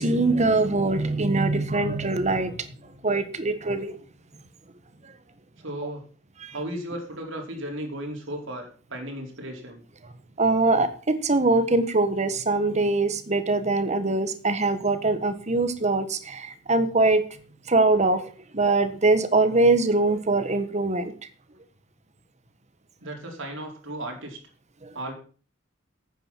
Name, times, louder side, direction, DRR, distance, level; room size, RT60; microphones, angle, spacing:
voice 1, 0.0-2.7 3.0-4.0 5.8-5.9 6.4-6.6 10.4-17.2 17.7-21.1 24.8-24.9, right 2 dB, 35° right, 11 dB, 1.4 m, -23 dB
voice 2, 5.6-6.0 6.5-9.8 23.0-24.4 24.9-25.1, right 1 dB, 75° right, 1 dB, 4.7 m, -35 dB
10.5 x 9.2 x 7.5 m, 0.41 s
head